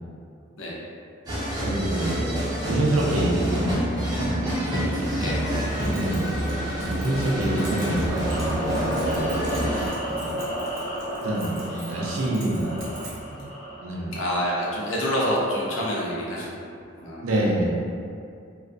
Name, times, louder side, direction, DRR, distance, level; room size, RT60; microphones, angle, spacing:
sound 1, 1.3-9.9, right 1 dB, 20° right, 0.4 m, -27 dB
voice 1, 1.6-2.3 2.6-3.8 5.8-6.4 7.0-8.8 10.1-10.4 11.2-13.0 13.3-13.4 13.8-14.1 17.2-17.7, right 1 dB, 90° right, -3 dB, 0.4 m, -26 dB
voice 2, 4.6-5.7 14.1-16.7 17.0-17.3, equal, 75° left, -5 dB, 0.5 m, -28 dB
Keys jangling, 5.5-13.4, right 2 dB, 75° right, 0.8 m, -45 dB
sound 2, 8.1-14.0, equal, 40° left, 0.7 m, -32 dB
2.3 x 2.1 x 2.5 m, 2.4 s
head